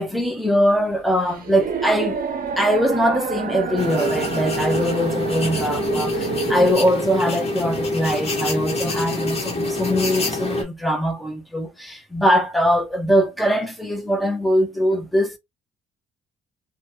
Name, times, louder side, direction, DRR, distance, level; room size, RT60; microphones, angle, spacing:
voice 1, 0.0-2.2 2.6-15.4, equal, ahead, 0.9 m, -22 dB
sound 1, 0.7-6.7, right 5 dB, 45° right, 0.8 m, -28 dB
sound 2, 3.8-10.6, left 2 dB, 30° left, 1.4 m, -26 dB
3.0 x 2.4 x 2.7 m
cardioid pair, 90°, 20 cm